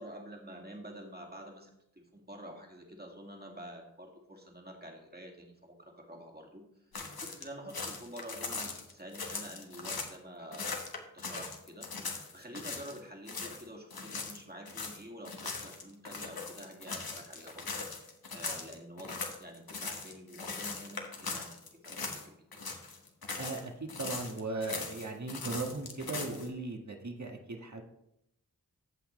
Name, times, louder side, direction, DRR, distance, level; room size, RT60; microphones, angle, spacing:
voice 1, 0.0-6.9 7.2-10.8 11.1-11.9 12.3-17.8 18.3-22.3, right 1 dB, 25° right, 1 dB, 2.0 m, -48 dB
sound 1, 6.9-10.2 10.5-13.0 13.3-13.6 13.9-22.3 22.5-23.6 23.9-26.5, left 4 dB, 85° left, 1.3 m, -40 dB
voice 2, 23.4-27.8, right 3 dB, 50° right, 3 dB, 1.5 m, -38 dB
15.5 x 5.9 x 3.2 m, 0.80 s
wide cardioid pair, 55°, 35 cm